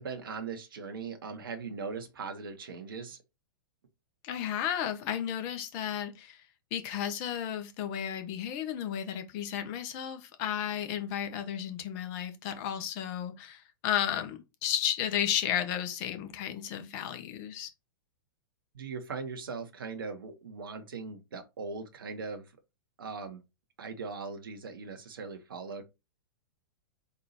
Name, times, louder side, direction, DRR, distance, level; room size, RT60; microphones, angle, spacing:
voice 1, 0.0-3.2 18.7-22.5 23.0-23.4 23.8-25.8, right 4 dB, 70° right, 0.9 m, -39 dB
voice 2, 4.2-6.4 6.7-17.7, left 10 dB, 40° left, 0.9 m, -33 dB
4.1 x 2.7 x 4.1 m
figure-of-eight pair, 105°, 12 cm